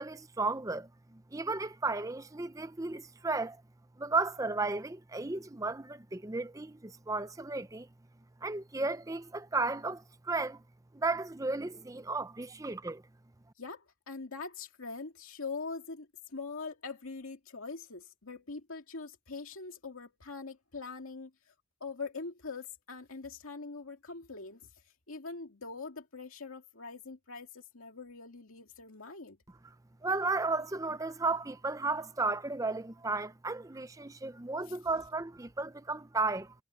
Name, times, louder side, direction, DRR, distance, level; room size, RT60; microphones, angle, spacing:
voice 1, 0.0-3.6 4.0-7.9 8.4-10.6 10.9-13.0 30.0-36.5, right 3 dB, 15° right, 0.6 m, -34 dB
voice 2, 13.6-21.5 21.8-29.4 34.6-34.8, left 4 dB, 90° left, 2.3 m, -43 dB
head